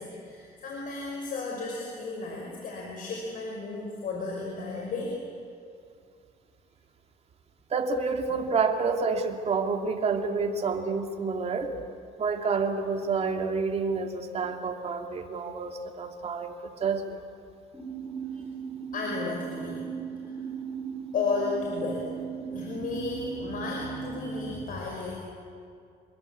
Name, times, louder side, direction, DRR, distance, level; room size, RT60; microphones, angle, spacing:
voice 1, 0.0-5.2 18.3-18.4 18.9-19.8 20.2-20.4 21.1-25.1, left 4 dB, 55° left, -1 dB, 5.7 m, -34 dB
voice 2, 7.7-11.7 12.2-17.2, right 4 dB, 40° right, 3 dB, 2.8 m, -29 dB
sound 1, 17.7-24.6, right 7 dB, 10° right, 3.7 m, -37 dB
27.5 x 21.5 x 8.5 m, 2.4 s
cardioid pair, 110°, 17 cm